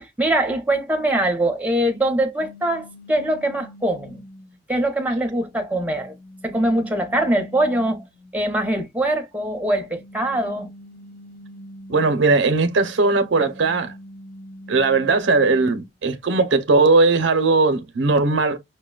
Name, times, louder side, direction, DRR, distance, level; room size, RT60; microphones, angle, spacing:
voice 1, 0.0-4.2 4.7-6.1 6.4-8.0 8.3-10.7, right 1 dB, 10° right, 0.8 m, -22 dB
sound 1, 2.4-4.6 5.2-8.3 9.5-12.5 12.9-15.9, equal, 55° left, 0.7 m, -43 dB
voice 2, 11.9-13.9 14.7-18.6, right 3 dB, 70° right, 0.6 m, -18 dB
5.6 x 2.2 x 2.3 m
head